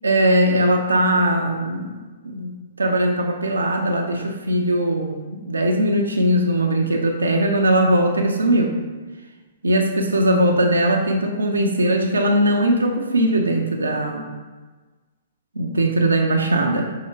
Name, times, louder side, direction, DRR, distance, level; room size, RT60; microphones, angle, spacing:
voice 1, 0.0-1.9 2.3-8.8 9.6-14.3 15.6-16.9, right 1 dB, 75° right, 2 dB, 0.4 m, -20 dB
5.6 x 2.7 x 3.2 m, 1.3 s
figure-of-eight pair, 115°, 0 cm